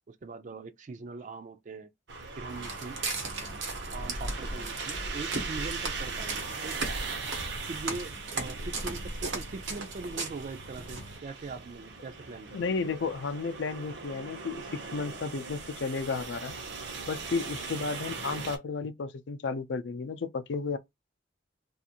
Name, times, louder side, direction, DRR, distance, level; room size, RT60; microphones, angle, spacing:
voice 1, 0.1-1.9 2.4-3.0 3.9-6.8 7.6-12.7, right 3 dB, 40° right, 0.3 m, -41 dB
sound 1, 2.1-18.6, right 3 dB, 65° right, 0.7 m, -39 dB
Walk footsteps, 2.5-11.2, right 3 dB, 85° right, 1.0 m, -38 dB
voice 2, 12.5-16.6 17.1-20.8, left 4 dB, 65° left, 0.4 m, -33 dB
2.5 x 2.4 x 2.7 m
head